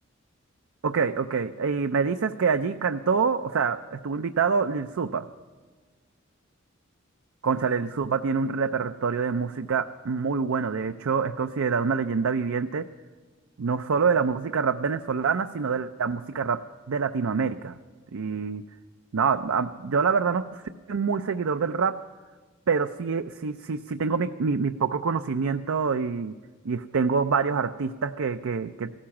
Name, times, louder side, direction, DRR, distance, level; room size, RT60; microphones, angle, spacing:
voice 1, 0.8-5.3 7.4-12.9 13.6-16.6 16.9-17.7 18.1-18.6 19.1-20.6 20.9-22.0 22.7-26.3 26.6-28.9, right 5 dB, 85° right, 9 dB, 0.5 m, -26 dB
15.5 x 13.5 x 6.0 m, 1.4 s
head